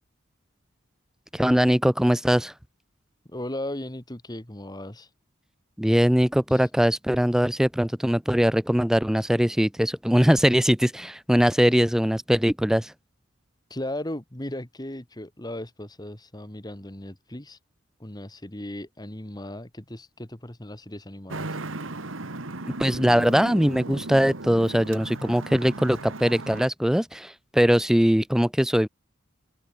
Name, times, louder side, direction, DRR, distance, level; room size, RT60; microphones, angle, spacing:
voice 1, 1.3-2.5 5.8-12.9 22.7-28.9, equal, 5° right, 0.5 m, -21 dB
voice 2, 3.3-5.1 6.5-6.6 13.7-17.6 18.0-21.6, left 1 dB, 20° left, 2.0 m, -36 dB
Traffic noise roadway noise, 21.3-26.7, right 2 dB, 85° right, 2.1 m, -36 dB
open air
head